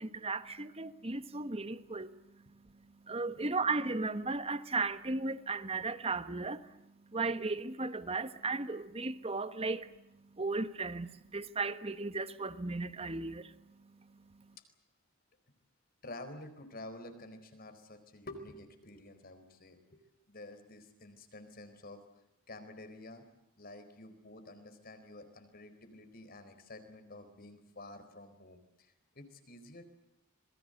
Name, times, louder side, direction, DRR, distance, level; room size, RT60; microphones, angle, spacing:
voice 1, 0.0-2.6 3.0-14.6, right 3 dB, 30° right, 1.3 m, -36 dB
voice 2, 16.0-22.0 22.5-23.3 23.6-29.9, left 2 dB, 45° left, 4.3 m, -50 dB
27.0 x 22.0 x 7.9 m
head